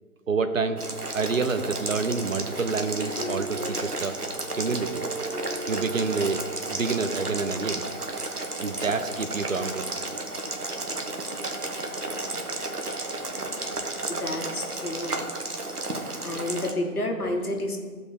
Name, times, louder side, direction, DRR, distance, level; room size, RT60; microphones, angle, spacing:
voice 1, 0.3-0.8 1.1-4.2 4.6-5.0 5.7-6.4 6.7-7.8 8.6-9.9 13.4-13.8, right 4 dB, 60° right, 10 dB, 0.8 m, -28 dB
Boiling, 0.8-16.7, right 2 dB, 90° right, 1.3 m, -33 dB
sound 1, 2.8-7.1, right 2 dB, 35° left, 2.3 m, -37 dB
voice 2, 14.1-15.2 16.2-17.8, left 1 dB, 75° left, 2 dB, 1.7 m, -30 dB
14.0 x 5.2 x 3.3 m, 1.5 s
figure-of-eight pair, 150°, 45 cm